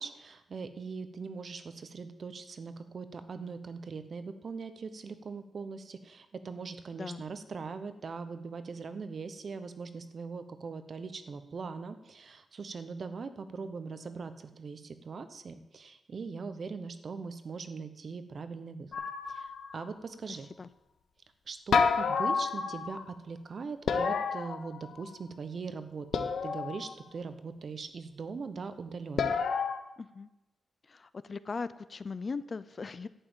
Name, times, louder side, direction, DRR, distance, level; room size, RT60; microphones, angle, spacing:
voice 1, 0.0-18.9 19.3-20.5 21.5-29.4, right 4 dB, 50° right, 11 dB, 0.9 m, -41 dB
voice 2, 6.9-7.2 20.3-20.7 30.0-30.3 30.9-33.1, left 4 dB, 35° left, 15 dB, 0.4 m, -39 dB
sound 1, 18.9-19.8 21.7-23.1 23.9-25.2 26.1-27.0 29.2-29.8, left 5 dB, 75° left, 0.9 m, -30 dB
11.0 x 5.6 x 8.9 m, 0.94 s
wide cardioid pair, 130°, 0 cm